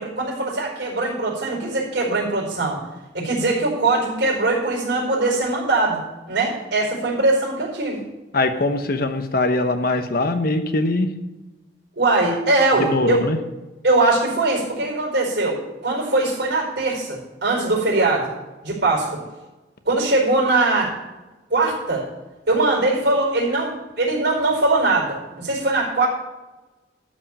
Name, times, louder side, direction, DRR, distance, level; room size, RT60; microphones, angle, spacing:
voice 1, 0.0-2.8 3.1-6.0 6.3-8.0 12.0-13.2 13.8-18.3 18.6-19.2 19.8-20.9 21.5-22.1 22.5-26.1, right 2 dB, 65° right, -2 dB, 4.9 m, -21 dB
voice 2, 8.3-11.1 12.8-13.4, left 2 dB, 55° left, 8 dB, 1.0 m, -21 dB
13.0 x 5.3 x 8.6 m, 1.1 s
head